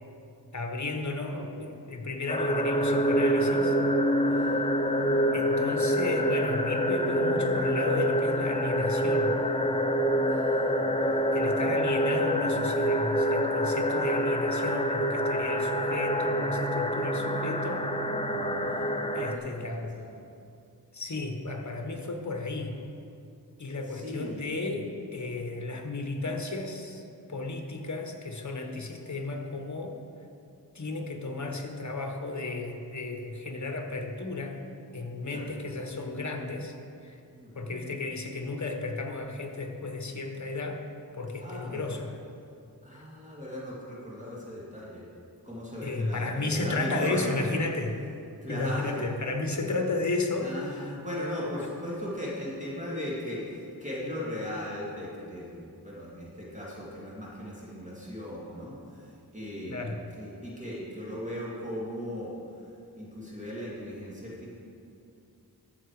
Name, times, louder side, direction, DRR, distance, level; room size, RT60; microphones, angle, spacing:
voice 1, 0.5-3.8 5.3-9.4 11.3-17.9 19.1-20.0 20.9-22.8 23.6-27.0 27.3-30.0 30.7-34.6 34.9-36.7 37.0-37.2 37.5-40.8 41.1-42.2 45.8-48.0 48.5-50.9 59.7-60.0, left 3 dB, 45° left, 4 dB, 1.4 m, -33 dB
sound 1, 2.3-19.4, equal, 15° left, 0.7 m, -26 dB
voice 2, 4.3-4.6 5.1-5.2 10.3-11.8 18.2-20.1 23.9-24.4 35.2-35.5 37.4-37.8 41.4-42.0 42.8-45.0 45.4-47.5 48.4-49.0 50.4-59.1 59.3-62.3 62.9-64.5, left 1 dB, 20° right, -6 dB, 2.7 m, -38 dB
13.5 x 7.1 x 5.0 m, 2.5 s
wide cardioid pair, 55°, 41 cm